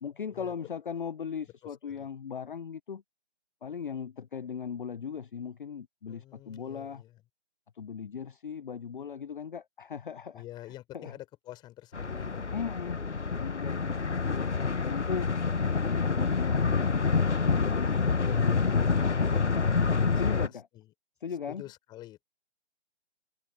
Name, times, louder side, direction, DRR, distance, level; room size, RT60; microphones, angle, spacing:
voice 1, 0.0-3.0 3.6-7.0 7.8-10.4 10.9-11.1 12.5-13.0 13.4-15.3 15.9-19.8 20.2-20.7 21.2-21.6, left 7 dB, 50° left, 0.8 m, -38 dB
voice 2, 1.6-2.1 6.1-7.2 10.3-12.5 19.8-20.9 21.3-22.2, left 15 dB, 15° left, 4.1 m, -49 dB
sound 1, 11.9-20.5, left 4 dB, 85° left, 1.0 m, -27 dB
figure-of-eight pair, 145°, 34 cm